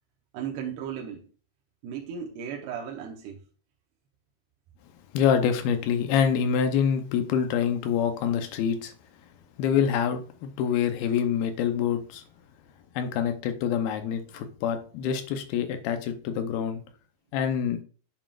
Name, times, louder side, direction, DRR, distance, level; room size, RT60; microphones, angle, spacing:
voice 1, 0.3-1.2 1.8-3.4, right 8 dB, 75° right, 2.9 m, -35 dB
voice 2, 5.1-8.9 9.6-12.2 13.0-16.8 17.3-17.8, left 8 dB, 80° left, 2.3 m, -26 dB
8.8 x 7.2 x 2.4 m
omnidirectional pair, 5.0 m